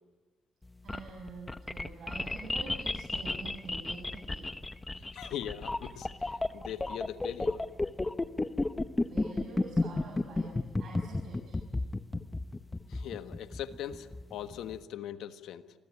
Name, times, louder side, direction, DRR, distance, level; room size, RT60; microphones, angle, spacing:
sound 1, 0.6-14.8, left 2 dB, 15° left, 1.1 m, -33 dB
voice 1, 0.8-4.5 9.1-11.6, right 4 dB, 65° right, 0 dB, 6.9 m, -46 dB
voice 2, 5.1-7.7 8.9-9.0 12.9-15.7, left 10 dB, 80° left, 9 dB, 1.3 m, -41 dB
27.0 x 21.5 x 9.9 m, 1.3 s
cardioid pair, 90°, 0 cm